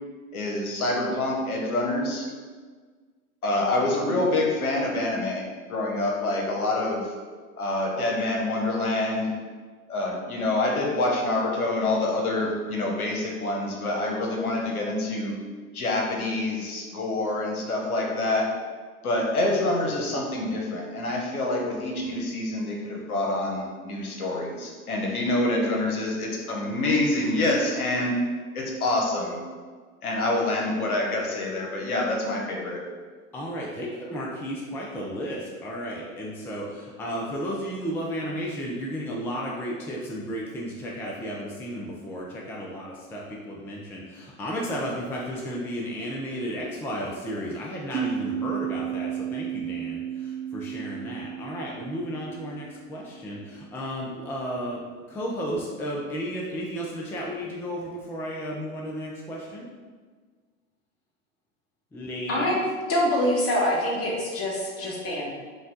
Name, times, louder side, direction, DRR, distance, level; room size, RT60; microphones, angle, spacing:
voice 1, 0.3-2.3 3.4-7.1 7.6-9.3 9.9-15.4 15.7-18.5 19.0-28.1 28.5-29.4 30.0-32.8, left 2 dB, 85° left, -1 dB, 1.0 m, -26 dB
voice 2, 33.3-54.8 55.1-59.7 61.9-62.6, equal, 5° left, -3 dB, 0.4 m, -33 dB
sound 1, 47.9-53.3, right 9 dB, 80° right, 0.9 m, -33 dB
voice 3, 62.9-65.3, left 1 dB, 30° left, -2 dB, 1.3 m, -25 dB
5.3 x 2.3 x 3.7 m, 1.5 s
hypercardioid pair, 95°, 43 cm